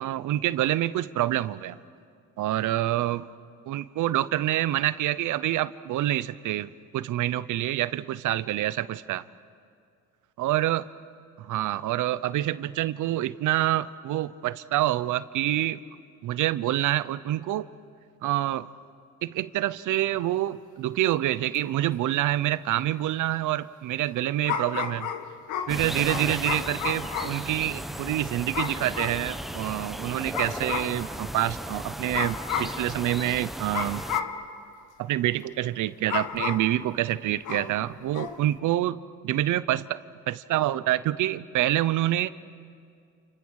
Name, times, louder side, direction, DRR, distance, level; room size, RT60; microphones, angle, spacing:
voice 1, 0.0-1.8 2.4-3.2 3.7-9.2 10.4-10.8 11.4-15.8 16.2-17.7 18.2-18.7 19.2-25.1 25.7-34.0 35.0-40.0 40.3-42.3, right 14 dB, 80° right, 15 dB, 0.8 m, -27 dB
sound 1, 21.5-21.6 24.4-27.4 28.5-29.2 30.3-31.0 32.1-32.8 33.7-34.4 36.1-36.8 37.4-37.8 38.1-38.4, left 7 dB, 85° left, 1.7 m, -32 dB
sound 2, 25.7-34.2, equal, ahead, 0.9 m, -36 dB
29.5 x 29.0 x 6.5 m, 2.2 s
cardioid pair, 90°, 30 cm